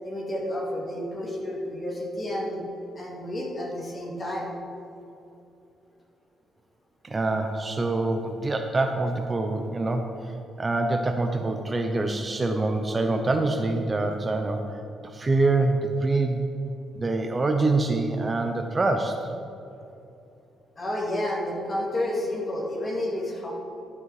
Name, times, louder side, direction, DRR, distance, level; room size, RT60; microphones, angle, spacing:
voice 1, 0.0-2.6 2.9-4.5 20.8-23.5, left 1 dB, 30° left, -2 dB, 2.3 m, -30 dB
voice 2, 7.0-16.4 17.0-19.3, right 2 dB, 25° right, 5 dB, 0.6 m, -25 dB
12.0 x 5.5 x 4.8 m, 2.8 s
cardioid pair, 90°, 0 cm